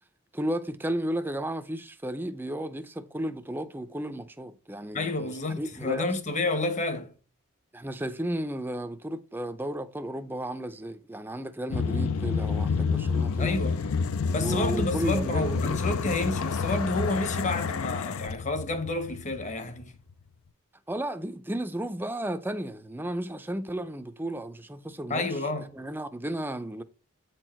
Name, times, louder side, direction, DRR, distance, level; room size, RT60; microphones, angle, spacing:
voice 1, 0.3-6.1 7.7-13.6 14.4-15.8 20.9-25.4 25.7-26.8, right 1 dB, 10° right, 0.5 m, -34 dB
voice 2, 4.9-7.2 13.4-13.8 14.3-19.9 25.1-25.7, left 2 dB, 35° left, 1.0 m, -30 dB
sound 1, 11.7-19.9, left 5 dB, 75° left, 0.5 m, -29 dB
8.5 x 4.5 x 4.4 m
head